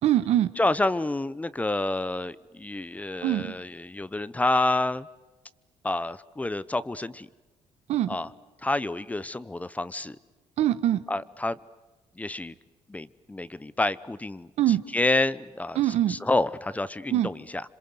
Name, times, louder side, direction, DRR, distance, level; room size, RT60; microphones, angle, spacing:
voice 1, 0.0-0.5 3.2-3.5 7.9-8.2 10.6-11.0 14.6-14.8 15.7-16.2 17.1-17.3, right 12 dB, 75° right, 13 dB, 1.5 m, -23 dB
voice 2, 0.6-5.1 5.8-7.3 8.1-8.3 8.6-10.2 11.1-11.6 12.2-12.5 12.9-14.5 14.9-15.8 16.1-17.6, left 2 dB, 15° left, 17 dB, 0.9 m, -28 dB
27.5 x 26.5 x 8.0 m, 1.2 s
cardioid pair, 115°, 11 cm